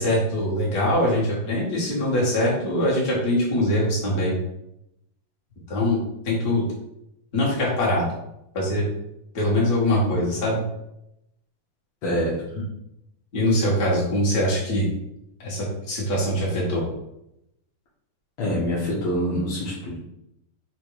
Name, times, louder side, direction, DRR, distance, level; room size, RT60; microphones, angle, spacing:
voice 1, 0.0-4.4 5.7-6.6 7.3-8.1 8.5-8.8 9.3-10.7 13.3-14.9 15.4-16.9, left 1 dB, 45° left, -5 dB, 1.1 m, -23 dB
voice 2, 12.0-12.4 18.4-20.0, equal, 85° left, -6 dB, 1.1 m, -25 dB
5.2 x 2.2 x 4.6 m, 0.82 s
omnidirectional pair, 3.7 m